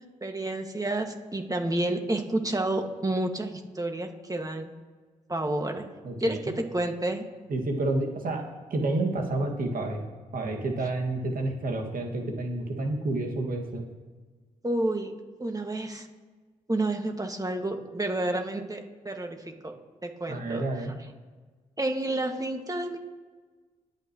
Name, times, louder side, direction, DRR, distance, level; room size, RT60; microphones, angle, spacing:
voice 1, 0.0-4.7 5.3-5.9 6.2-7.2 14.6-15.1 15.4-16.1 16.7-19.7 20.0-20.6 21.8-23.0, right 1 dB, 20° right, 3 dB, 2.0 m, -30 dB
voice 2, 6.0-6.6 7.5-8.4 8.7-10.0 10.3-13.8 20.3-20.9, right 2 dB, 65° right, 1 dB, 2.1 m, -29 dB
21.5 x 8.9 x 3.1 m, 1.4 s
supercardioid pair, 45°, 16 cm